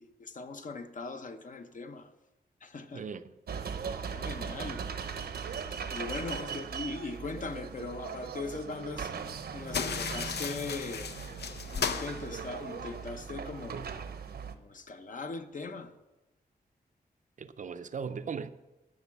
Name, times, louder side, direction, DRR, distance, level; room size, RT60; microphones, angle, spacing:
voice 1, 0.0-2.1 2.6-3.0 4.1-4.9 5.9-9.1 9.5-11.1 11.7-13.8 14.5-15.9, left 3 dB, 50° left, 0.8 m, -40 dB
voice 2, 2.9-3.4 6.5-6.6 13.7-13.9 17.4-18.5, right 6 dB, 50° right, 0.5 m, -38 dB
sound 1, 3.5-14.5, right 6 dB, 70° right, 0.8 m, -39 dB
sound 2, 9.7-13.1, left 6 dB, 80° left, 0.7 m, -36 dB
12.0 x 6.2 x 7.2 m
wide cardioid pair, 135°, 17 cm